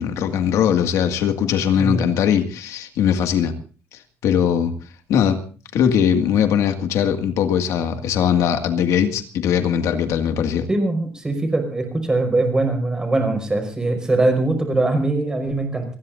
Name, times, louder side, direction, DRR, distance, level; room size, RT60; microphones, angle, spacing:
voice 1, 0.0-3.5 4.2-4.7 5.1-5.4 5.7-10.7, left 8 dB, 85° left, 6 dB, 2.0 m, -20 dB
voice 2, 10.7-15.8, right 2 dB, 15° right, 5 dB, 5.0 m, -21 dB
27.5 x 20.0 x 2.6 m, 0.39 s
cardioid pair, 165°, 5 cm